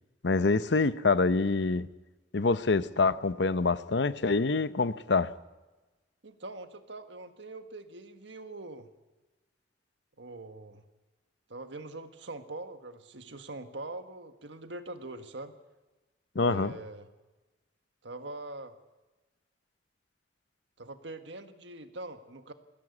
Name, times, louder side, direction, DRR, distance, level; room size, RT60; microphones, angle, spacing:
voice 1, 0.2-1.9 2.3-5.3 16.3-16.8, left 3 dB, 70° left, 14 dB, 0.7 m, -26 dB
voice 2, 6.2-8.9 10.2-10.8 11.5-15.5 16.3-17.1 18.0-18.7 20.8-22.5, right 2 dB, 75° right, 8 dB, 1.6 m, -43 dB
21.0 x 16.0 x 8.4 m, 1.1 s
head